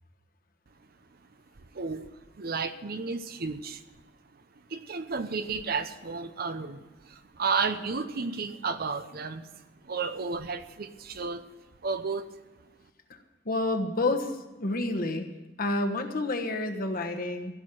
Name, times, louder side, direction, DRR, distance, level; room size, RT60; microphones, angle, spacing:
voice 1, 1.7-2.1 2.4-3.8 4.7-11.5 11.8-12.2, right 4 dB, 55° right, 11 dB, 0.7 m, -32 dB
voice 2, 13.4-15.3 15.6-17.6, left 2 dB, 50° left, 6 dB, 1.3 m, -29 dB
15.5 x 6.3 x 8.9 m, 1.2 s
head